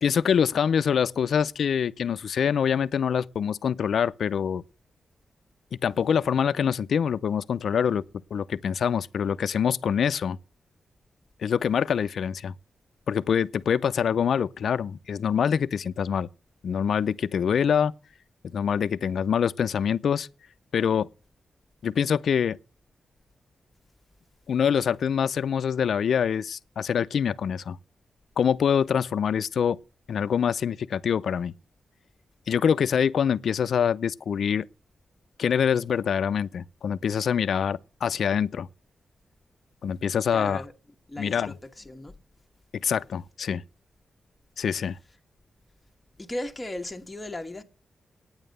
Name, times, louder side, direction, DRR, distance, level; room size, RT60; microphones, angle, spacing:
voice 1, 0.0-4.6 5.8-8.0 8.3-10.4 11.4-12.5 13.1-16.3 16.6-17.9 18.5-20.3 20.7-21.1 21.8-22.6 24.5-27.8 28.4-29.8 30.1-31.5 32.5-34.7 35.4-38.7 39.8-40.6 41.2-41.5 42.7-43.6 44.6-45.0, left 7 dB, 75° left, 0.5 m, -25 dB
voice 2, 40.3-40.7 41.1-42.2 46.2-47.6, left 1 dB, 15° left, 1.4 m, -36 dB
9.5 x 9.0 x 6.6 m
cardioid pair, 85°, 0 cm